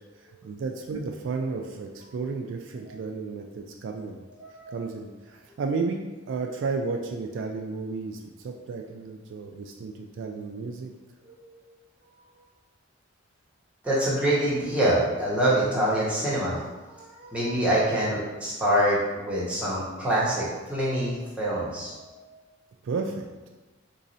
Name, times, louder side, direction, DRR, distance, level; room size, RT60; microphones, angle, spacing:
voice 1, 0.2-4.2 4.7-10.9 22.8-23.3, right 4 dB, 60° right, 3 dB, 0.3 m, -33 dB
voice 2, 4.4-4.8 11.2-11.6 13.8-22.4, right 1 dB, 5° right, -8 dB, 0.9 m, -26 dB
3.9 x 3.1 x 2.6 m, 1.2 s
head